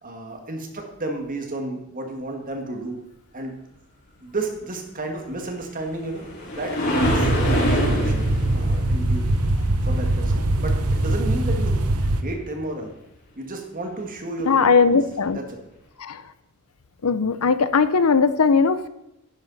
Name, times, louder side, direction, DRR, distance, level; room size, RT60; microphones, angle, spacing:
voice 1, 0.0-3.0 3.3-3.6 4.2-8.3 8.5-9.3 9.8-11.8 12.2-12.9 13.4-15.0 15.3-15.6, right 2 dB, 40° right, 3 dB, 1.9 m, -32 dB
sound 1, 5.4-10.6 14.5-14.6 15.2-15.3, left 1 dB, 55° left, 4.5 m, -27 dB
sound 2, 7.0-12.2, right 1 dB, 85° right, 0.9 m, -22 dB
voice 2, 14.5-15.4 16.0-16.2 17.0-18.9, left 5 dB, 80° left, 13 dB, 0.7 m, -19 dB
11.0 x 10.5 x 4.1 m, 0.88 s
head